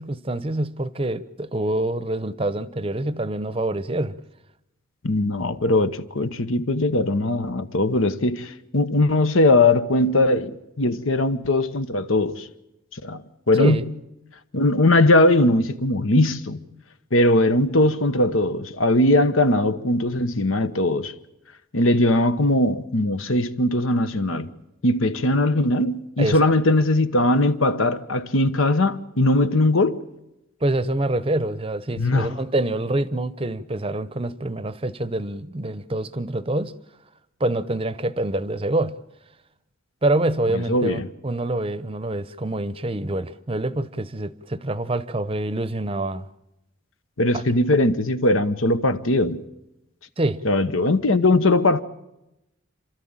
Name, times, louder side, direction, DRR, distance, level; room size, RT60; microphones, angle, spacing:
voice 1, 0.0-4.2 13.6-13.8 26.2-26.4 30.6-36.7 37.4-39.0 40.0-46.3 47.3-47.4 50.2-50.4, right 2 dB, 25° right, 0.7 m, -26 dB
voice 2, 5.0-12.5 12.9-13.8 14.5-16.6 17.1-21.1 21.7-24.5 24.8-30.0 32.0-32.3 40.5-41.1 47.2-49.4 50.4-51.8, left 2 dB, 80° left, 1.1 m, -20 dB
28.5 x 13.0 x 8.9 m
head